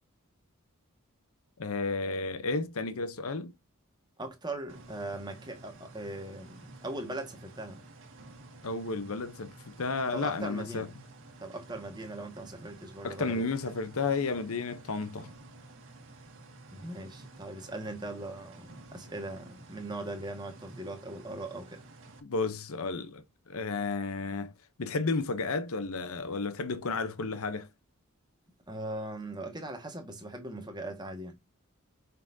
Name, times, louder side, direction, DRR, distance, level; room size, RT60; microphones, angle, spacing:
voice 1, 1.6-3.5 8.6-10.9 13.0-15.3 22.2-24.5 24.8-27.7, left 3 dB, 70° left, 0.8 m, -32 dB
voice 2, 4.2-7.8 10.1-10.9 11.4-13.4 16.7-21.8 28.7-31.4, right 2 dB, 20° right, 1.7 m, -40 dB
sound 1, 4.7-22.2, right 2 dB, 55° right, 1.8 m, -52 dB
7.2 x 5.7 x 2.7 m
head